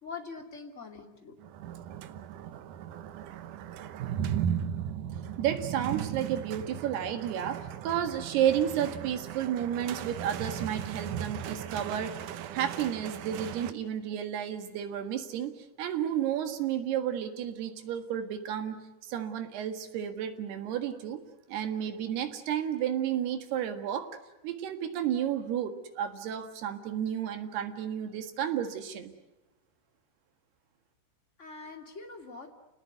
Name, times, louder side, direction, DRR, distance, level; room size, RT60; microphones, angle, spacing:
voice 1, 0.0-1.3 31.4-32.5, left 4 dB, 25° left, 4 dB, 1.7 m, -43 dB
sound 1, 1.4-13.7, right 9 dB, 85° right, 1.8 m, -37 dB
voice 2, 5.4-21.2 21.5-24.2 24.4-29.1, right 10 dB, 65° right, 8 dB, 3.5 m, -32 dB
29.5 x 19.5 x 9.4 m, 0.98 s
omnidirectional pair, 5.2 m